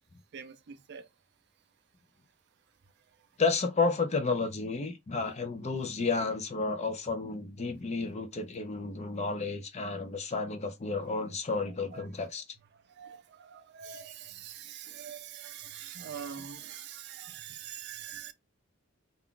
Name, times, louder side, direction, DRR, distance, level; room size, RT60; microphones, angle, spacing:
voice 1, 0.3-1.1 11.1-11.2 11.9-12.0 12.7-18.3, right 8 dB, 50° right, 0.4 m, -44 dB
voice 2, 3.4-12.4, left 4 dB, 30° left, 0.5 m, -31 dB
2.4 x 2.3 x 3.6 m
head